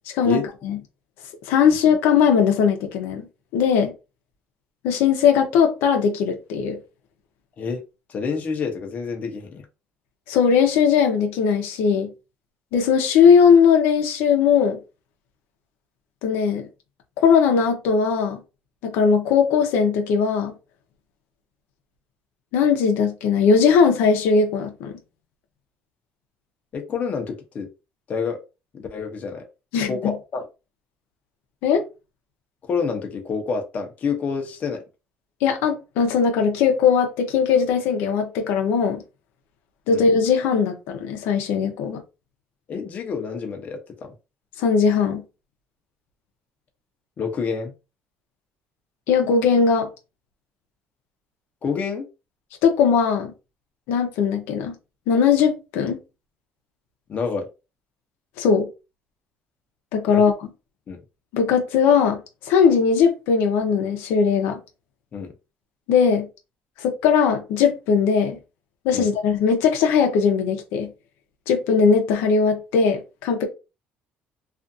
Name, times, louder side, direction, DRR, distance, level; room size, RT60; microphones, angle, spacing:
voice 1, 0.1-0.8 1.5-3.3 3.5-3.9 4.8-6.8 10.3-12.1 12.7-14.8 16.2-16.7 17.2-18.4 18.8-20.5 22.5-25.0 29.7-30.1 31.6-31.8 35.4-39.0 39.9-42.0 44.6-45.2 49.1-49.9 52.6-53.3 53.9-54.7 55.1-56.0 58.4-58.7 59.9-60.5 61.3-62.2 62.4-64.6 65.9-66.3 66.8-68.4 68.8-70.9 71.5-73.5, left 6 dB, 90° left, 0.6 m, -19 dB
voice 2, 8.1-9.6 26.7-27.7 28.1-28.4 28.7-29.5 29.9-30.4 32.6-34.8 39.9-40.0 42.7-44.1 47.2-47.7 51.6-52.1 57.1-57.5 60.1-60.2 60.9-61.0 65.1-65.3 68.9-69.1, left 5 dB, 40° left, 0.7 m, -28 dB
2.4 x 2.4 x 2.6 m
cardioid pair, 130°, 4 cm